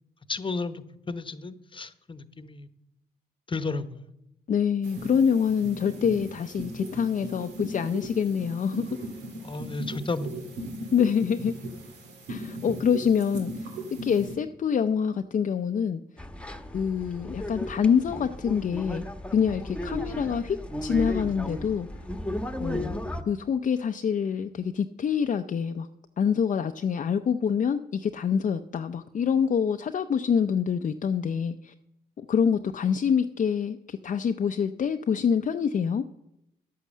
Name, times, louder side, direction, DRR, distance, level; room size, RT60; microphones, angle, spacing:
voice 1, 0.3-2.7 3.5-4.1 9.4-10.6, left 3 dB, 30° left, 13 dB, 1.0 m, -33 dB
voice 2, 4.5-8.9 10.9-11.5 12.3-13.7 14.0-16.0 16.7-19.0 19.3-21.9 22.6-23.0 23.2-25.9 26.2-31.7 32.2-36.0, left 7 dB, 50° left, 7 dB, 0.6 m, -26 dB
sound 1, 4.8-14.3, right 1 dB, 90° right, 2.2 m, -38 dB
sound 2, 16.2-23.2, equal, 5° left, 1.3 m, -35 dB
10.5 x 8.4 x 7.3 m, 0.84 s
supercardioid pair, 55°, 17 cm